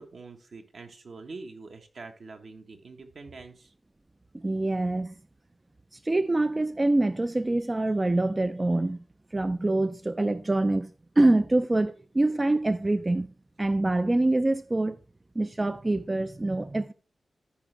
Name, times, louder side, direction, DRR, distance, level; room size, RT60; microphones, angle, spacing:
voice 1, 0.0-3.7, right 3 dB, 70° right, 1.3 m, -45 dB
voice 2, 4.3-5.2 5.9-9.0 9.3-10.9 11.2-13.3 13.6-15.0 15.4-16.9, right 2 dB, 25° right, 0.3 m, -25 dB
13.5 x 5.0 x 3.4 m
wide cardioid pair, 100°, 0 cm